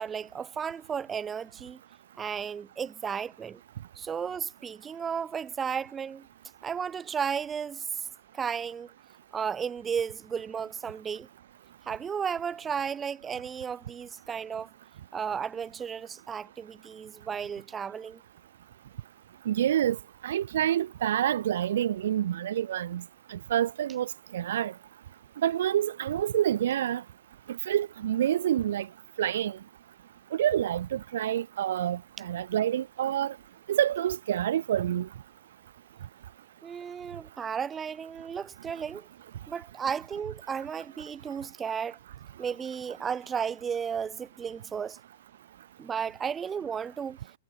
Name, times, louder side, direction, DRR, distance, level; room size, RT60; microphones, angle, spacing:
voice 1, 0.0-1.8 2.2-3.6 4.0-6.3 6.6-7.9 8.3-8.9 9.3-11.3 11.9-14.7 15.1-18.2 36.6-39.1 39.5-42.0 42.4-45.0 45.8-47.2, right 7 dB, 20° right, 0.6 m, -34 dB
voice 2, 19.4-23.0 23.3-24.7 25.4-27.0 27.5-28.9 29.2-29.6 30.3-33.4 33.7-35.1, right 11 dB, 65° right, 1.3 m, -27 dB
figure-of-eight pair, 110°, 0 cm